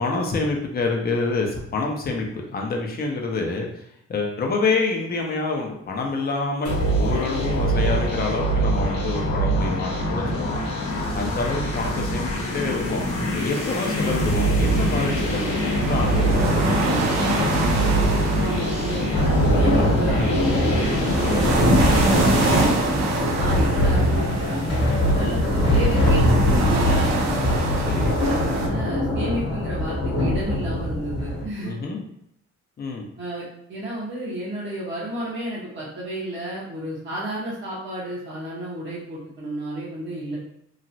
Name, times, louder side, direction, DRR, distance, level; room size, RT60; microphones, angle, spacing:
voice 1, 0.0-3.7 4.1-10.6 11.1-17.0 27.8-28.2 31.6-32.0 32.8-33.0, left 3 dB, 30° left, 1 dB, 0.6 m, -27 dB
sound 1, 6.6-22.6, right 1 dB, 75° left, 0.9 m, -24 dB
sound 2, 13.6-28.7, right 2 dB, 60° right, 0.7 m, -26 dB
voice 2, 18.3-22.9 23.3-27.6 28.2-31.8 33.2-40.4, right 1 dB, 40° right, -8 dB, 1.1 m, -32 dB
sound 3, 19.1-31.5, left 1 dB, 50° left, 1.2 m, -22 dB
3.0 x 2.4 x 2.6 m, 0.73 s
cardioid pair, 90°, 30 cm